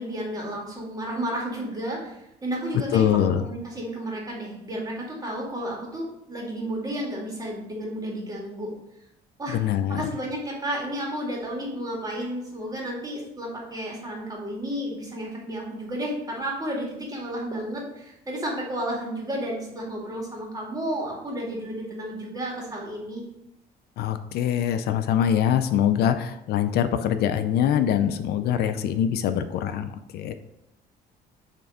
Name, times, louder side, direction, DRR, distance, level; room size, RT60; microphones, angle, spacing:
voice 1, 0.0-8.7 9.4-9.6 9.9-23.2, equal, 20° right, -2 dB, 2.1 m, -32 dB
voice 2, 2.9-3.5 9.5-10.1 24.0-30.3, left 9 dB, 70° left, 10 dB, 0.5 m, -23 dB
6.6 x 3.4 x 4.9 m, 0.83 s
cardioid pair, 110°, 17 cm